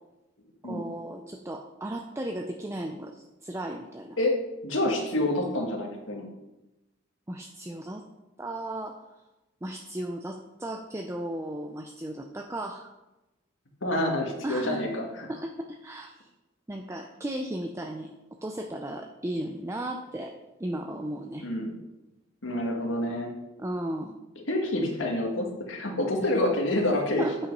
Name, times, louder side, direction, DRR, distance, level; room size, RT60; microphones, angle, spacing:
voice 1, 0.6-4.2 7.3-8.0 8.4-9.0 9.6-12.9 14.4-15.0 15.3-16.3 16.7-18.1 18.4-20.3 20.6-21.5 23.6-24.2 26.2-26.3 27.2-27.4, right 1 dB, 15° right, 4 dB, 0.5 m, -35 dB
voice 2, 4.6-6.3 13.8-15.3 21.4-21.7 22.4-23.3 24.5-27.3, left 1 dB, 85° left, 1 dB, 1.8 m, -27 dB
8.7 x 5.6 x 5.4 m, 1.0 s
head